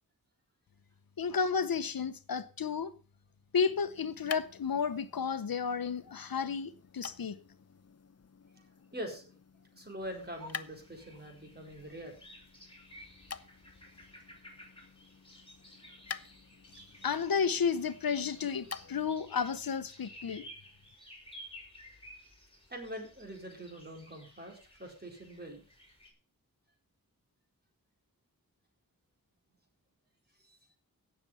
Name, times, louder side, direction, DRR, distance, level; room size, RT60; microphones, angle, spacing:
voice 1, 1.2-2.9 3.5-7.4 17.0-20.5, left 6 dB, 75° left, 0.9 m, -32 dB
sound 1, 3.6-19.2, left 6 dB, 45° left, 0.7 m, -49 dB
voice 2, 8.9-9.3 9.7-12.1 22.7-25.6 30.4-30.6, equal, 25° right, 4.5 m, -44 dB
sound 2, 10.0-26.1, equal, 15° left, 5.6 m, -54 dB
17.0 x 6.8 x 5.6 m
wide cardioid pair, 75°, 35 cm